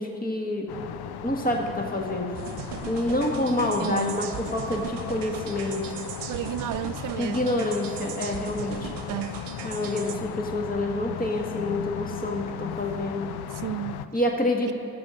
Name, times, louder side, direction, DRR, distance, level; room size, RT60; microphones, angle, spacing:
voice 1, 0.0-2.4 2.9-6.0 7.2-8.9 9.6-13.3 14.1-14.7, left 1 dB, 20° left, 1.8 m, -28 dB
sound 1, 0.7-14.1, left 10 dB, 60° left, 0.6 m, -37 dB
sound 2, 2.3-10.2, right 8 dB, 70° right, 0.9 m, -39 dB
voice 2, 3.8-4.2 6.3-7.5 9.1-9.4 13.5-14.0 14.7-14.8, right 13 dB, 50° right, 0.5 m, -32 dB
13.0 x 7.9 x 5.1 m
hypercardioid pair, 45°, 43 cm